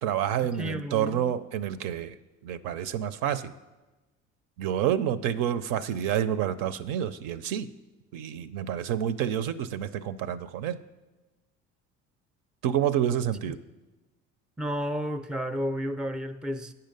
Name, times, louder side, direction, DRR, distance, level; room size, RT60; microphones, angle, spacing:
voice 1, 0.0-2.2 2.4-3.5 4.6-7.7 8.1-10.8 12.6-13.6, right 10 dB, 65° right, 0.5 m, -28 dB
voice 2, 0.6-1.3 13.4-13.5 14.6-16.7, equal, ahead, 0.4 m, -32 dB
8.7 x 5.6 x 5.2 m
hypercardioid pair, 65°, 36 cm